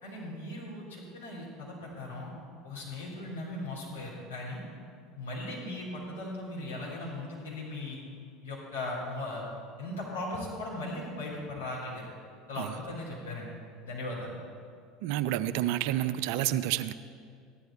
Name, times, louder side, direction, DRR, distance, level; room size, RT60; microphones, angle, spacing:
voice 1, 0.0-2.3 2.6-4.6 5.2-8.0 8.4-9.4 9.8-12.1 12.5-13.5 13.8-14.4, left 2 dB, 75° left, -5 dB, 3.7 m, -38 dB
voice 2, 15.0-16.9, right 13 dB, 55° right, 13 dB, 0.4 m, -29 dB
14.5 x 11.0 x 4.4 m, 2.2 s
figure-of-eight pair, 70°, 0 cm